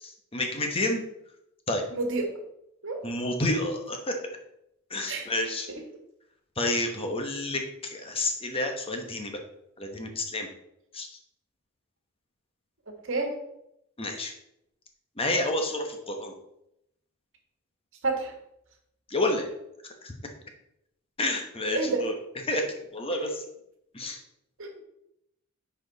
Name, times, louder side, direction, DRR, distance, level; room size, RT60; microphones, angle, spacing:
voice 1, 0.0-1.0 1.7-1.9 3.0-4.2 4.9-5.7 6.6-9.4 9.8-10.5 10.9-11.1 14.0-14.3 15.2-16.3 19.1-19.5 20.0-20.1 21.2-22.1 22.4-22.6 22.9-23.4 23.9-24.2, left 2 dB, 25° left, 3 dB, 1.0 m, -29 dB
voice 2, 1.9-2.3 2.8-3.0 5.1-5.2 13.1-13.3 18.0-18.3 21.7-22.0 23.1-23.3 24.6-24.8, right 3 dB, 60° right, 3 dB, 1.5 m, -29 dB
10.0 x 4.5 x 4.0 m, 0.80 s
head